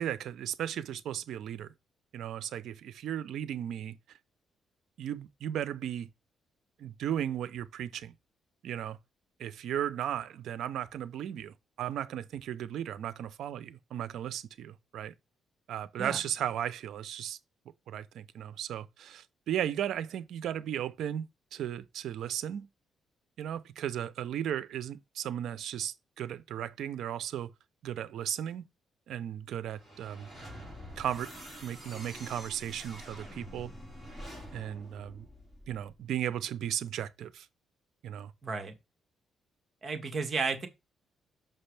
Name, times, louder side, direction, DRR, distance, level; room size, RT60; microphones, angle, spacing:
voice 1, 0.0-1.7 2.1-4.0 5.0-6.1 6.8-8.1 8.6-9.0 9.4-15.1 15.7-17.4 17.9-21.3 21.5-22.7 23.4-27.5 27.8-28.6 29.1-30.3 31.0-31.3 31.6-33.7 34.5-35.3 35.7-37.5 38.0-38.3, right 10 dB, 75° right, 0.6 m, -35 dB
sound 1, 29.7-36.0, equal, ahead, 4.5 m, -47 dB
voice 2, 38.4-38.7 39.8-40.7, right 4 dB, 40° right, 1.5 m, -33 dB
6.1 x 5.5 x 3.4 m
cardioid pair, 90°, 0 cm